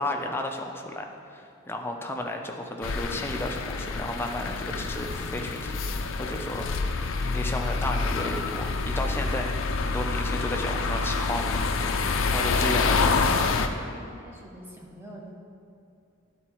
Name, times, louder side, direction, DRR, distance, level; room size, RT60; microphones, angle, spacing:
voice 1, 0.0-7.0 7.3-13.4, left 1 dB, 10° left, 3 dB, 0.5 m, -33 dB
sound 1, 2.8-13.7, left 4 dB, 75° left, 0.5 m, -27 dB
voice 2, 12.9-15.3, right 1 dB, 10° right, -2 dB, 1.0 m, -44 dB
11.0 x 3.9 x 4.4 m, 2.5 s
head